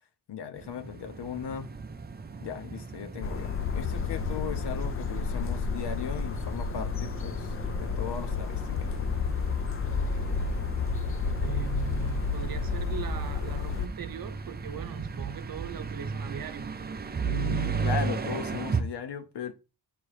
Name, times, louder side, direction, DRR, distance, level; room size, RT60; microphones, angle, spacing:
voice 1, 0.3-1.7 2.4-9.2 17.2-19.5, left 8 dB, 75° left, 0.9 m, -37 dB
sound 1, 0.6-18.8, right 5 dB, 25° right, 0.5 m, -36 dB
sound 2, 3.2-13.9, left 5 dB, 35° left, 0.5 m, -31 dB
voice 2, 11.4-16.9, right 7 dB, 60° right, 0.8 m, -40 dB
8.2 x 3.0 x 4.8 m
wide cardioid pair, 150°, 40 cm